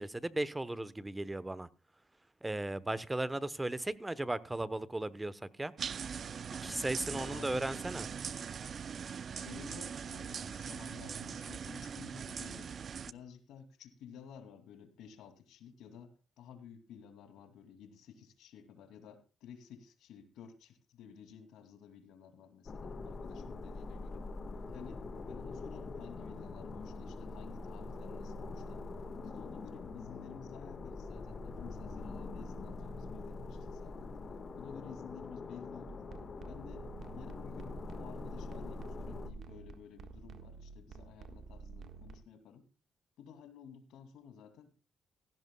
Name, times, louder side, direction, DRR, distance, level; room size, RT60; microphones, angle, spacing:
voice 1, 0.0-1.7 2.4-5.7 6.6-8.0, right 2 dB, 15° right, 1.0 m, -36 dB
sound 1, 5.8-13.1, right 7 dB, 50° right, 0.5 m, -41 dB
voice 2, 7.1-7.7 9.3-12.7 13.1-24.2 24.7-28.9 29.2-34.2 34.5-36.0 36.5-42.7 43.2-44.7, left 7 dB, 85° left, 2.6 m, -53 dB
sound 2, 22.7-39.3, left 3 dB, 40° left, 1.6 m, -44 dB
sound 3, 35.9-42.2, right 5 dB, 65° right, 1.5 m, -50 dB
16.5 x 15.0 x 2.3 m
cardioid pair, 90°, 0 cm